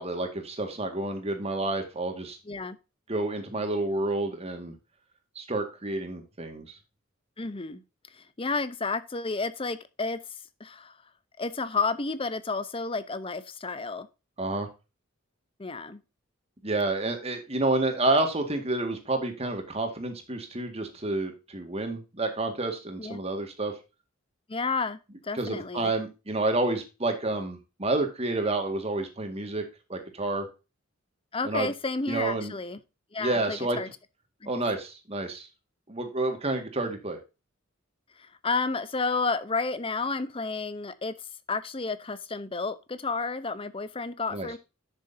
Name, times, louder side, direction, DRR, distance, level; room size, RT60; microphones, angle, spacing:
voice 1, 0.0-2.4 3.1-4.7 5.4-6.8 14.4-14.7 16.6-23.7 25.3-29.6 29.9-30.5 31.4-31.7 32.1-32.5 33.2-33.8 34.5-35.5 35.9-37.2 44.3-44.5, right 2 dB, 30° right, 1.9 m, -29 dB
voice 2, 2.5-2.8 7.4-7.8 8.1-10.2 10.6-10.9 11.4-14.1 15.6-16.0 23.0-23.2 24.5-25.9 31.3-32.8 33.1-33.9 34.4-34.5 38.2-41.1 41.5-44.6, left 4 dB, 25° left, 0.8 m, -31 dB
10.5 x 6.7 x 2.7 m
head